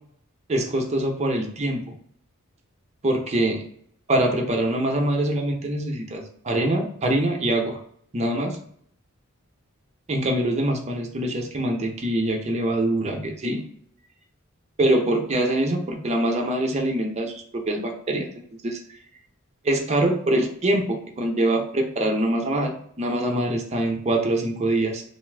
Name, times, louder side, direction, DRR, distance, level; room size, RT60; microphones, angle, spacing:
voice 1, 0.5-1.9 3.0-3.6 4.1-7.8 8.1-8.6 10.1-13.6 14.8-18.3 18.6-18.8 19.6-25.0, right 1 dB, 30° right, 1 dB, 0.5 m, -24 dB
2.5 x 2.4 x 3.3 m, 0.64 s
head